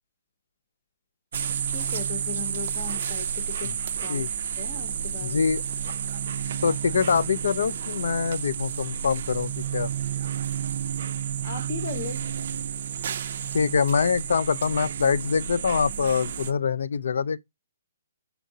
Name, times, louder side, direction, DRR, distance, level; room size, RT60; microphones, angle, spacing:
sound 1, 1.3-16.5, right 9 dB, 55° right, 0.3 m, -31 dB
voice 1, 1.7-3.7 4.0-4.2 4.6-5.4 11.4-12.2, left 6 dB, 35° left, 0.7 m, -37 dB
voice 2, 5.2-5.6 6.6-9.9 13.5-17.4, left 6 dB, 75° left, 0.3 m, -24 dB
4.5 x 3.7 x 2.7 m
hypercardioid pair, 160°, 0 cm